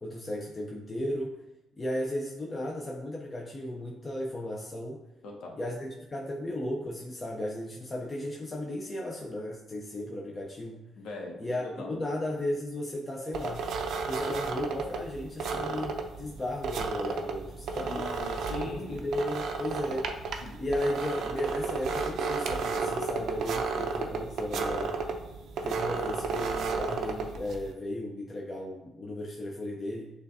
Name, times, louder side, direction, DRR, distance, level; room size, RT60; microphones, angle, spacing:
voice 1, 0.0-1.4 1.8-5.0 5.6-10.8 11.4-11.6 11.9-13.7 14.1-18.0 18.6-20.1 20.6-25.0 25.6-30.1, left 1 dB, 25° left, -2 dB, 0.6 m, -35 dB
voice 2, 5.2-5.6 11.0-12.0 17.8-19.1 20.4-20.6, left 2 dB, 85° left, 0 dB, 0.9 m, -40 dB
sound 1, 13.3-27.7, right 4 dB, 70° right, 0.5 m, -33 dB
6.5 x 2.4 x 2.7 m, 0.99 s
cardioid pair, 90°, 0 cm